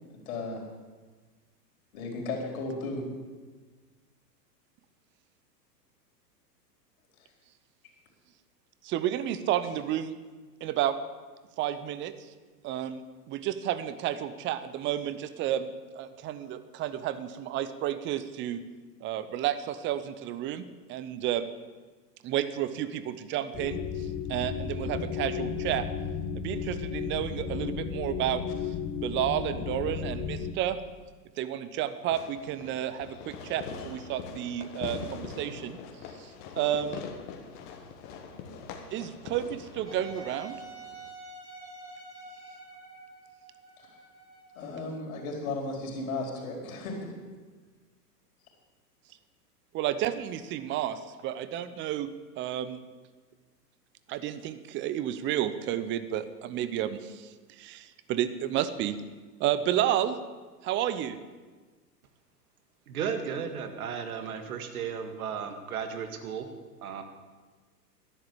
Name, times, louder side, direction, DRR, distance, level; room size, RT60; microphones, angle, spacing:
voice 1, 0.1-0.6 1.9-3.0 43.8-43.9 44.5-47.2, left 3 dB, 55° left, 0 dB, 4.6 m, -35 dB
voice 2, 8.8-10.1 10.6-11.0 11.6-12.1 12.6-18.6 19.0-20.6 20.9-21.5 22.2-23.8 24.3-25.8 26.3-28.4 28.7-30.8 31.4-35.8 36.2-36.3 36.6-37.0 38.9-40.6 49.7-52.8 54.1-59.0 59.4-60.2 60.6-61.2, right 11 dB, 25° right, 13 dB, 0.7 m, -31 dB
sound 1, 23.5-30.5, left 6 dB, 25° left, 1.2 m, -34 dB
Fireworks, 32.1-41.1, left 6 dB, 40° left, 1.8 m, -43 dB
Wind instrument woodwind instrument, 39.9-45.5, right 3 dB, 85° right, 4.9 m, -48 dB
voice 3, 62.9-66.5 66.8-67.0, right 7 dB, 60° right, 7 dB, 2.0 m, -34 dB
11.5 x 10.5 x 8.3 m, 1.4 s
figure-of-eight pair, 100°, 49 cm